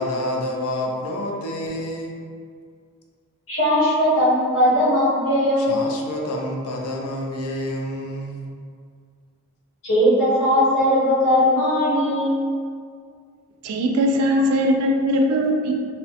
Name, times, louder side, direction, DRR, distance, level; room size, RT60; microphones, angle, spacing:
voice 1, 0.0-2.2 5.6-8.5, left 1 dB, 85° left, -1 dB, 0.4 m, -28 dB
voice 2, 3.5-5.8 9.8-12.4, equal, 60° left, -9 dB, 1.0 m, -19 dB
voice 3, 13.6-15.7, equal, 85° right, 3 dB, 0.3 m, -20 dB
2.8 x 2.0 x 2.8 m, 2.1 s
head